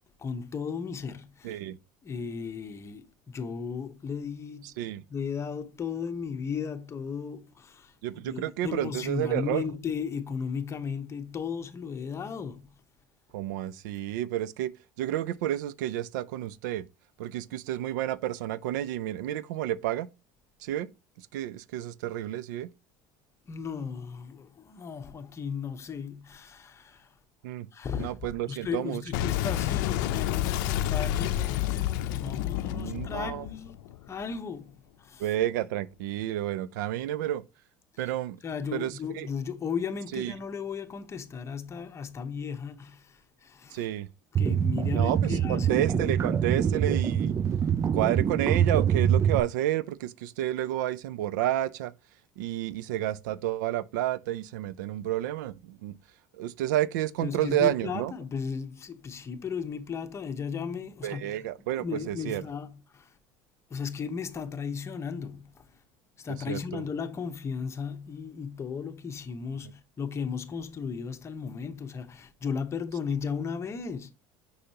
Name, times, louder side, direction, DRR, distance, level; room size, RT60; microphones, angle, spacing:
voice 1, 0.2-1.6 2.0-4.7 5.1-7.9 8.2-12.7 23.5-27.1 27.7-28.2 28.5-33.7 34.1-34.7 35.0-35.3 38.4-43.9 44.3-46.1 57.2-61.4 61.8-63.1 63.7-65.7 66.2-74.1, left 6 dB, 30° left, 1.0 m, -35 dB
voice 2, 1.4-1.8 4.6-5.0 8.0-9.6 13.3-14.7 15.0-16.8 17.2-20.1 20.6-20.9 21.3-22.7 27.4-27.7 28.0-29.0 32.7-33.5 35.2-37.4 38.0-38.4 38.7-39.3 40.1-40.3 43.7-44.1 44.9-47.3 47.9-51.9 52.4-55.9 56.3-58.1 61.0-62.4 66.5-66.8, right 13 dB, 90° right, 0.5 m, -30 dB
Boom, 29.1-34.3, left 13 dB, 80° left, 0.5 m, -29 dB
sound 1, 44.4-49.4, right 8 dB, 30° right, 0.4 m, -25 dB
6.5 x 5.6 x 2.9 m
supercardioid pair, 110°, 10 cm